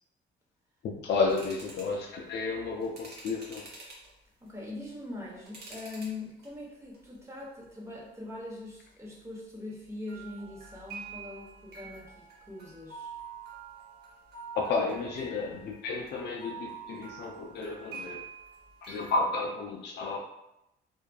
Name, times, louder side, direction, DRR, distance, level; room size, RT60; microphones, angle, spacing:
voice 1, 0.8-3.7 14.5-18.3 18.8-20.2, left 3 dB, 60° left, -1 dB, 0.4 m, -32 dB
sound 1, 1.3-2.0 2.8-4.1 4.7-6.1 6.4-7.0 7.4-7.6 10.1-19.2, right 5 dB, 55° right, 0.8 m, -46 dB
voice 2, 4.4-13.1, left 2 dB, 15° right, -4 dB, 0.8 m, -42 dB
2.5 x 2.3 x 2.2 m, 0.86 s
cardioid pair, 90°, 20 cm